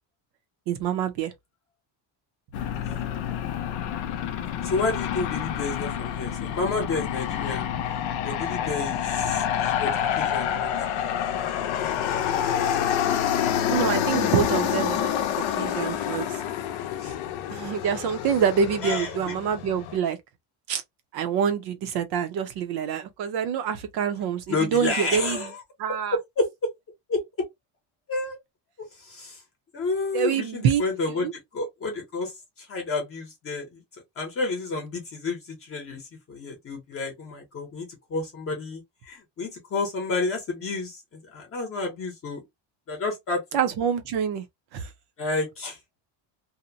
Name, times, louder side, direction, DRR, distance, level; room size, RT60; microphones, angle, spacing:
voice 1, 0.7-1.3 13.7-15.1 15.5-16.4 17.5-20.2 20.7-20.8 21.1-25.5 25.8-26.2 30.1-30.8 31.1-31.3 43.5-44.4 44.7-44.9, right 7 dB, 55° right, 0.7 m, -26 dB
Aircraft, 2.5-20.0, left 9 dB, 75° left, 0.6 m, -28 dB
voice 2, 4.6-7.7 8.2-9.9 10.2-10.7 17.0-17.2 18.8-19.3 24.5-25.6 26.1-26.5 27.1-27.2 28.1-28.4 29.0-29.4 29.7-33.8 34.2-42.4 42.9-43.4 45.2-45.8, left 3 dB, 30° left, 0.8 m, -30 dB
2.7 x 2.1 x 2.6 m
cardioid pair, 175°, 46 cm